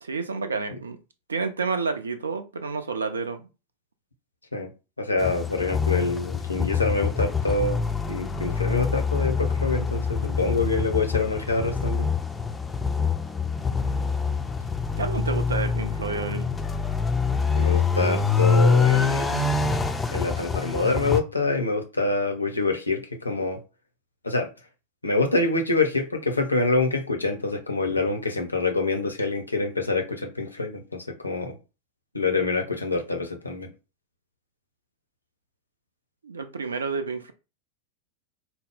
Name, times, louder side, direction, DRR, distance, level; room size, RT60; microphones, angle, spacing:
voice 1, 0.0-1.0 1.3-3.5 15.0-16.5 36.2-37.3, right 4 dB, 75° right, 0.5 m, -29 dB
voice 2, 5.0-12.1 17.5-19.4 20.1-23.6 24.2-24.5 25.0-31.5 32.1-33.7, left 3 dB, 80° left, 0.8 m, -26 dB
sound 1, 5.2-21.2, left 5 dB, 10° left, 0.5 m, -25 dB
4.5 x 2.0 x 3.6 m
figure-of-eight pair, 90°, 0 cm